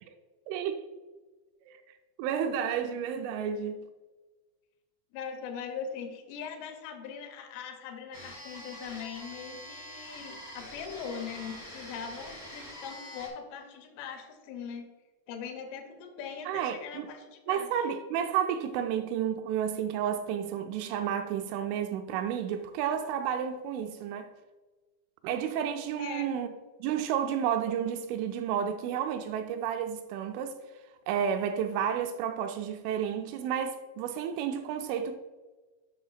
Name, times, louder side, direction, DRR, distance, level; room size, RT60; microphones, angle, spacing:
voice 1, 0.5-0.8 1.7-1.8 2.2-3.8 16.5-17.1 17.5-24.3 25.2-26.5 26.8-30.6 31.1-35.2, right 8 dB, 85° right, 2.9 m, -31 dB
voice 2, 5.1-14.9 15.3-17.7 26.0-26.3, left 6 dB, 80° left, 3.3 m, -41 dB
sound 1, 8.1-13.3, equal, 40° right, 0.3 m, -45 dB
7.9 x 5.7 x 4.0 m
omnidirectional pair, 5.7 m